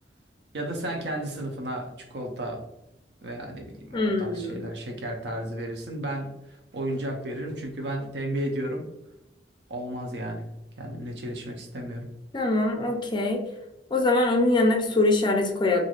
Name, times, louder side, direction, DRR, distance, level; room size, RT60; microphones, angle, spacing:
voice 1, 0.5-2.6 3.2-6.3 6.7-8.9 9.7-10.5 10.8-12.1, right 1 dB, 70° right, 3 dB, 0.6 m, -33 dB
voice 2, 3.9-4.6 12.3-13.4 13.9-15.8, left 2 dB, 25° left, 2 dB, 0.4 m, -23 dB
3.1 x 2.5 x 2.4 m, 0.92 s
head